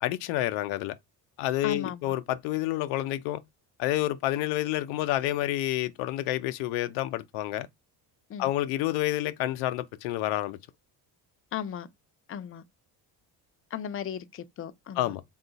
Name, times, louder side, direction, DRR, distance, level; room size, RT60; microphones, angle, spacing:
voice 1, 0.0-0.9 1.4-3.4 3.8-7.7 8.4-10.6 15.0-15.2, left 15 dB, 90° left, 0.6 m, -29 dB
voice 2, 1.6-2.1 8.3-8.5 11.5-11.9 12.3-12.6 13.7-15.2, left 8 dB, 30° left, 0.5 m, -36 dB
3.7 x 2.3 x 3.9 m
supercardioid pair, 85°, 47 cm